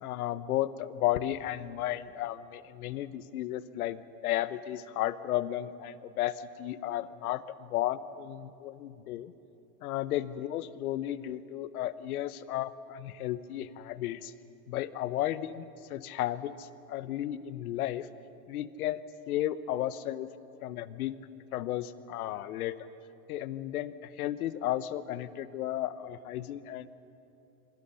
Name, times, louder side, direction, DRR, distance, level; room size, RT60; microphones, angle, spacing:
voice 1, 0.0-9.3 9.8-14.3 14.7-15.6 15.9-18.1 18.5-19.0 19.3-20.3 20.6-21.2 21.5-22.9 23.3-26.9, left 13 dB, 75° left, 14 dB, 1.2 m, -34 dB
27.0 x 25.0 x 5.8 m, 2.8 s
hypercardioid pair, 115°, 44 cm